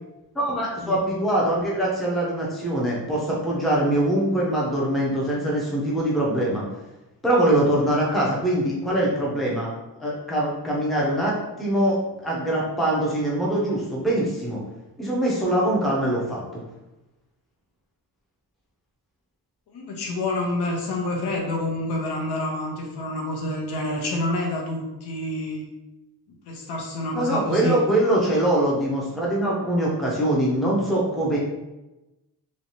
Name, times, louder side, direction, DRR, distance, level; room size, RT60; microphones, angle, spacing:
voice 1, 0.3-6.6 7.2-9.7 10.0-14.6 15.0-16.6 27.1-31.4, right 1 dB, ahead, -5 dB, 0.6 m, -23 dB
voice 2, 19.7-25.7 26.4-27.8, left 1 dB, 75° left, 0 dB, 0.9 m, -28 dB
3.2 x 2.9 x 2.8 m, 0.99 s
wide cardioid pair, 175°, 40 cm